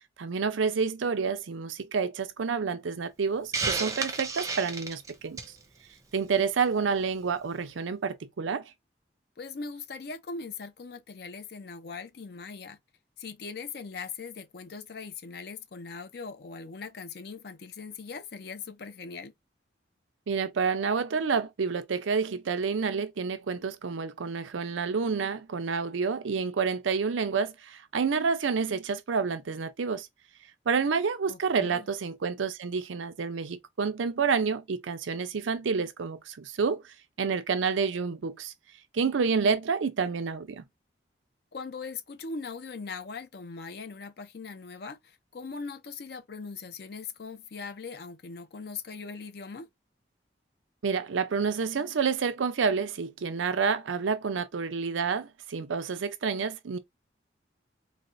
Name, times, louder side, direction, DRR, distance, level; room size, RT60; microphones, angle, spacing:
voice 1, 0.2-5.4 6.1-8.7 20.3-30.1 30.7-38.5 38.9-40.6 50.8-56.8, right 5 dB, 90° right, 0.5 m, -29 dB
Hiss, 3.5-5.6, right 4 dB, 15° right, 0.4 m, -31 dB
voice 2, 9.4-12.8 13.2-19.3 31.3-31.9 41.5-49.7, left 4 dB, 55° left, 0.5 m, -40 dB
4.0 x 2.1 x 2.5 m
head